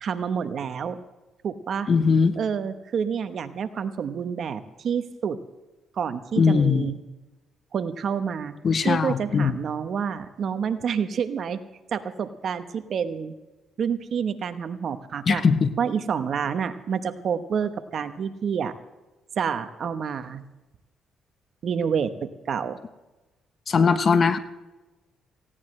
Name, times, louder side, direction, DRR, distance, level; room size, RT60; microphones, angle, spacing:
voice 1, 0.0-1.0 1.4-1.9 2.4-5.4 6.0-7.0 7.7-8.5 8.8-11.6 11.9-13.3 13.8-15.4 15.8-18.7 19.4-20.4 21.6-22.1 22.5-22.8, right 7 dB, 60° right, 10 dB, 1.1 m, -28 dB
voice 2, 1.9-2.3 6.4-7.0 8.6-9.5 15.3-15.7 23.7-24.4, left 5 dB, 45° left, 11 dB, 1.1 m, -20 dB
18.5 x 16.5 x 3.3 m, 1.1 s
cardioid pair, 90°, 0 cm